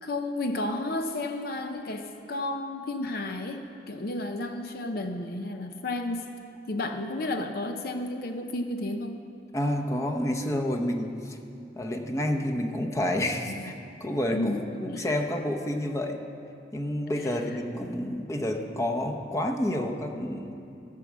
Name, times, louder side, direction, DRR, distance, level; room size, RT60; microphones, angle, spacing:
voice 1, 0.0-3.6 3.9-6.2 6.7-9.2 13.5-13.7 14.3-15.1, left 2 dB, 60° left, 5 dB, 0.6 m, -32 dB
voice 2, 9.5-11.4 11.7-13.7 14.0-16.2 16.7-20.6, left 1 dB, 15° left, 2 dB, 0.8 m, -29 dB
15.0 x 6.1 x 7.3 m, 2.6 s
head